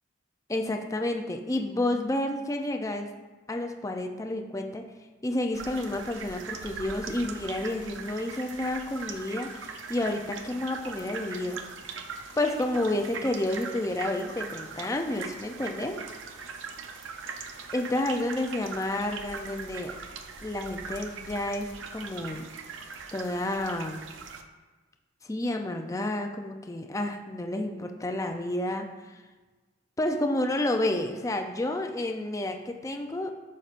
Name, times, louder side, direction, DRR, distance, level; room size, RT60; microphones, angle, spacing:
voice 1, 0.5-3.1 3.5-4.9 5.2-11.6 12.4-16.0 17.7-20.0 20.4-22.5 23.1-24.1 25.3-29.1 30.0-33.3, left 1 dB, 15° left, 4 dB, 0.4 m, -30 dB
sound 1, 5.5-24.4, right 5 dB, 65° right, 0.6 m, -41 dB
9.6 x 6.5 x 2.5 m, 1.3 s
head